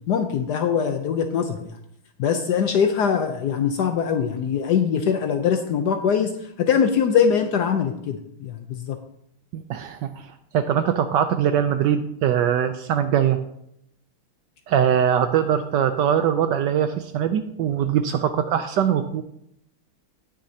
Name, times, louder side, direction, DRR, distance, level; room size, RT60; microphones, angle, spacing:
voice 1, 0.0-1.7 2.2-6.3 6.6-9.0, left 7 dB, 70° left, 6 dB, 1.0 m, -22 dB
voice 2, 9.5-13.4 14.7-19.2, right 9 dB, 75° right, 10 dB, 1.0 m, -22 dB
18.0 x 6.4 x 2.8 m, 0.75 s
omnidirectional pair, 2.3 m